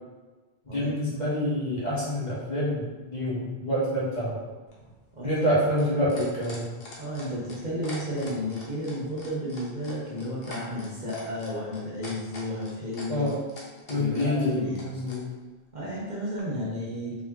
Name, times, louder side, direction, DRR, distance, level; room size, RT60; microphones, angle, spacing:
voice 1, 0.6-4.4 5.2-6.7 13.1-13.4 13.9-15.3, equal, 45° left, -8 dB, 1.4 m, -27 dB
sound 1, 4.7-15.2 16.4-16.5, left 2 dB, 65° left, 1.1 m, -44 dB
voice 2, 7.0-13.3 13.9-14.9 15.7-17.2, equal, 45° right, -6 dB, 1.2 m, -32 dB
4.2 x 3.5 x 3.0 m, 1.3 s
omnidirectional pair, 1.1 m